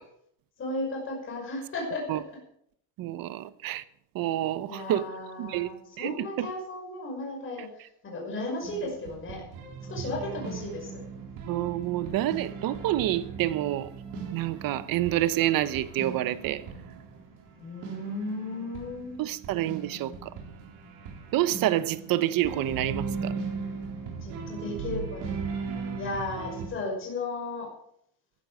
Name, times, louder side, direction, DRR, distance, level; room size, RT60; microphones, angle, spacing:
voice 1, 0.6-2.2 4.7-7.7 8.0-9.4 9.9-11.0 12.1-12.2 12.6-12.7 17.6-19.1 24.2-25.4 26.0-27.7, left 2 dB, 30° left, 5.6 m, -35 dB
voice 2, 3.0-3.8 4.1-5.1 5.4-5.7 6.0-6.5 11.5-13.9 14.3-16.6 19.2-20.3 21.3-23.3, right 14 dB, 55° right, 0.9 m, -28 dB
sound 1, 8.6-26.7, right 5 dB, 70° right, 3.8 m, -38 dB
15.0 x 11.5 x 4.9 m
cardioid pair, 155°, 41 cm